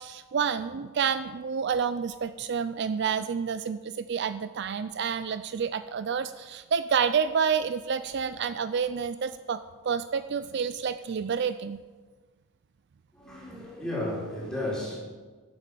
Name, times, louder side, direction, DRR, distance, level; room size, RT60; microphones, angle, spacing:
voice 1, 0.0-9.6 9.8-11.8, right 6 dB, 50° right, 12 dB, 0.4 m, -29 dB
voice 2, 13.1-15.0, left 1 dB, 5° left, -7 dB, 4.4 m, -33 dB
12.5 x 8.1 x 6.8 m, 1.4 s
head